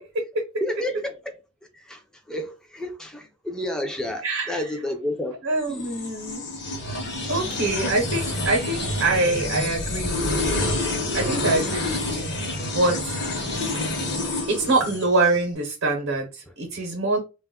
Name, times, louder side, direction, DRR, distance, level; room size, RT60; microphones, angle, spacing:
voice 1, 0.6-1.4 1.7-2.0 2.3-5.4 5.7-5.9 14.3-14.4, left 1 dB, 5° left, 0.3 m, -30 dB
voice 2, 4.2-4.7 5.4-6.4 7.3-10.7 11.1-13.2 13.7-13.9 14.5-17.2, right 2 dB, 70° right, 0.7 m, -25 dB
sound 1, 5.7-15.4, left 2 dB, 55° left, 0.8 m, -28 dB
2.2 x 2.0 x 3.5 m
head